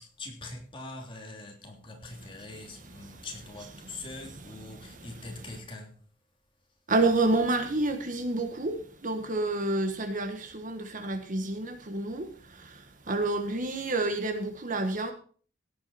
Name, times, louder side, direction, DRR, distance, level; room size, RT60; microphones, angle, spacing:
voice 1, 0.0-5.9, left 2 dB, 30° left, 3.2 m, -43 dB
voice 2, 4.8-5.3 6.9-15.1, right 2 dB, 45° right, 1.6 m, -29 dB
17.0 x 8.7 x 4.3 m
head